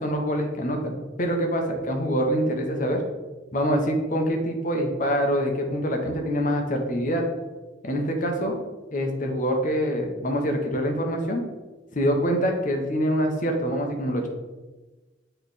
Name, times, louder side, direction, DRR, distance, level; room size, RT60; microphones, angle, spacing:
voice 1, 0.0-3.0 3.5-7.2 7.8-8.6 8.9-11.4 11.9-14.3, equal, 40° left, 3 dB, 1.0 m, -25 dB
8.3 x 3.3 x 4.2 m, 1.2 s
head